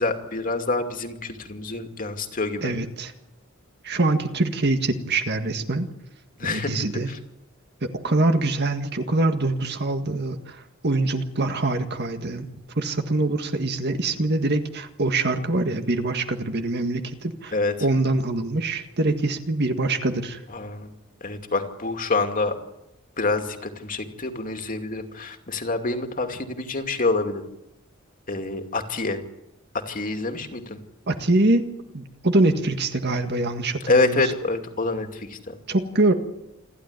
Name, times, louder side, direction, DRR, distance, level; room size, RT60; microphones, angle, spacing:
voice 1, 0.0-2.7 6.4-7.2 17.5-17.7 20.5-20.9 21.2-22.6 23.2-27.4 28.3-29.2 29.9-30.8 33.9-35.6, left 3 dB, 40° left, 5 dB, 2.5 m, -26 dB
voice 2, 2.6-3.1 3.8-5.9 6.4-7.1 7.8-12.5 12.8-17.5 17.8-20.4 31.1-34.2 35.7-36.1, right 2 dB, 50° right, 7 dB, 1.8 m, -24 dB
28.0 x 12.0 x 9.8 m, 0.87 s
head